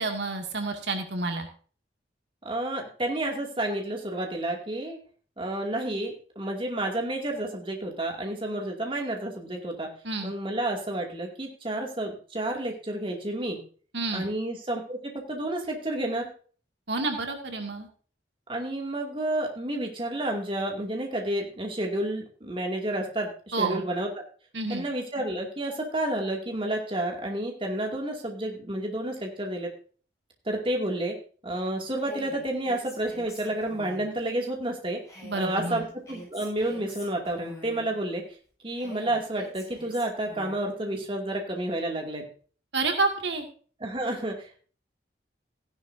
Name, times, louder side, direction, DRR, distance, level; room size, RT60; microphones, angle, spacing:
voice 1, 0.0-1.5 10.0-10.3 13.9-14.3 16.9-17.9 23.5-23.8 24.5-24.8 35.2-35.9 42.7-43.5, right 3 dB, 70° right, 4 dB, 2.2 m, -29 dB
voice 2, 2.4-5.0 5.4-9.9 10.2-13.6 14.1-15.0 15.3-16.3 18.5-24.1 24.7-29.7 30.5-31.2 31.4-35.0 35.3-38.2 38.6-42.2 43.8-44.7, right 1 dB, 30° right, 1 dB, 2.4 m, -30 dB
Female speech woman speaking, 32.0-34.1 35.1-38.0 38.8-40.7, equal, 15° left, 6.6 m, -46 dB
15.5 x 11.5 x 2.7 m, 0.41 s
head